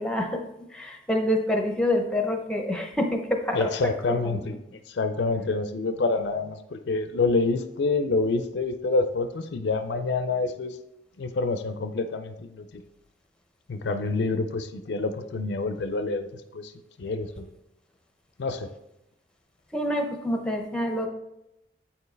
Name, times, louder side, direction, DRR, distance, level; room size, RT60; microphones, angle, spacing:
voice 1, 0.0-3.7 4.2-4.4 19.7-21.1, left 1 dB, 5° left, 3 dB, 0.6 m, -27 dB
voice 2, 3.5-10.8 11.2-12.8 13.7-16.7 17.0-17.5 18.4-18.7, left 3 dB, 65° left, 9 dB, 0.4 m, -27 dB
8.7 x 4.5 x 3.3 m, 0.88 s
head